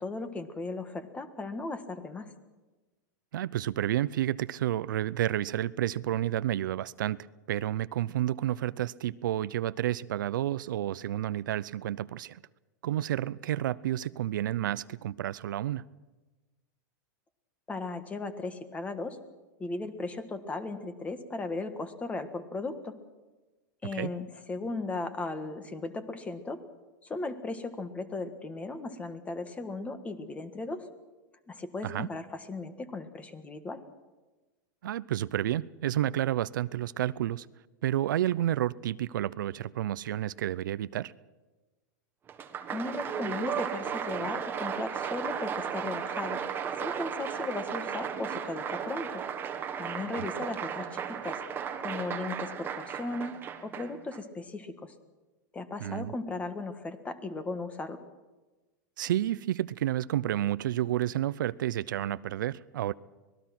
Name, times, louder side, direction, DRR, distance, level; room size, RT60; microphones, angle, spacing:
voice 1, 0.0-2.3 17.7-19.2 19.6-22.9 23.8-26.6 27.0-30.9 31.5-33.8 42.7-46.4 46.8-49.2 49.8-51.4 51.8-53.3 53.6-54.9 55.5-58.0, left 3 dB, 15° left, 1.6 m, -36 dB
voice 2, 3.3-7.2 7.5-12.4 12.8-15.8 23.9-24.1 31.8-32.1 34.8-37.5 37.8-41.1 50.3-50.4 55.8-56.1 59.0-62.9, right 12 dB, 80° right, 0.6 m, -30 dB
Applause, 42.3-54.2, right 7 dB, 20° right, 1.5 m, -35 dB
25.5 x 19.5 x 6.0 m
supercardioid pair, 140°, 10 cm